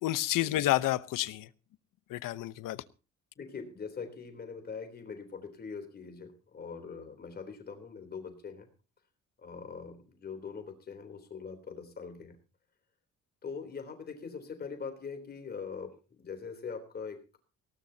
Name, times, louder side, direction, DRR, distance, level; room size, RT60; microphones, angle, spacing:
voice 1, 0.0-1.5 2.1-2.8, left 15 dB, 85° left, 1.0 m, -30 dB
voice 2, 3.4-8.7 9.4-12.4 13.4-17.4, left 5 dB, 30° left, 3.5 m, -42 dB
19.5 x 17.5 x 2.9 m
cardioid pair, 175°, 32 cm